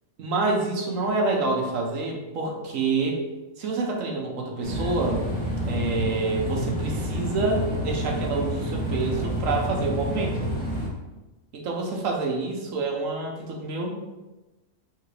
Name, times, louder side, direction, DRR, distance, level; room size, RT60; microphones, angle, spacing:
voice 1, 0.2-3.2 3.6-5.2 5.7-10.4 11.5-14.0, right 3 dB, 75° right, 0 dB, 1.2 m, -27 dB
sound 1, 4.6-10.9, equal, 5° left, 1.0 m, -29 dB
3.8 x 2.9 x 4.7 m, 1.1 s
omnidirectional pair, 1.4 m